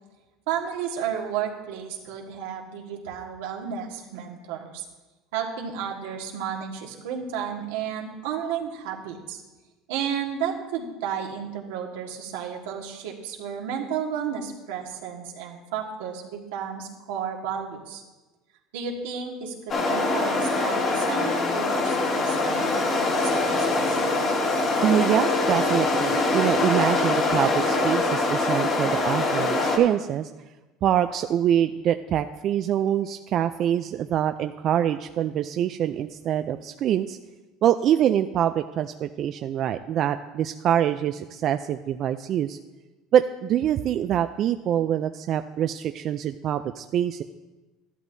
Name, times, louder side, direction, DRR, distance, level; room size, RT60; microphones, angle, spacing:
voice 1, 0.5-4.9 5.3-9.4 9.9-18.0 18.7-24.0, right 8 dB, 85° right, 0 dB, 1.6 m, -32 dB
sound 1, 19.7-29.8, left 2 dB, 40° left, 2.3 m, -23 dB
voice 2, 24.8-30.3 30.8-37.2 37.6-42.6 43.1-47.2, right 10 dB, 50° right, 9 dB, 0.4 m, -24 dB
12.5 x 11.0 x 2.7 m, 1.2 s
supercardioid pair, 105°, 0 cm